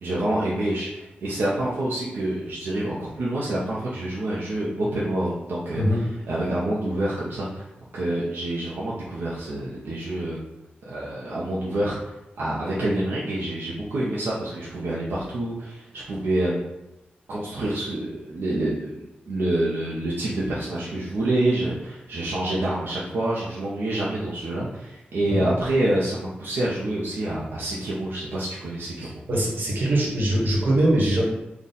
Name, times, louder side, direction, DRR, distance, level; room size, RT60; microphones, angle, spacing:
voice 1, 0.0-5.8 6.3-7.7 7.9-10.4 10.9-12.0 12.4-16.6 17.3-19.0 19.3-29.1, right 1 dB, 80° right, -7 dB, 0.7 m, -27 dB
voice 2, 5.7-6.1 25.3-25.5 29.0-31.2, right 1 dB, 60° right, -3 dB, 1.1 m, -22 dB
3.9 x 2.3 x 4.0 m, 0.96 s
wide cardioid pair, 130°, 4 cm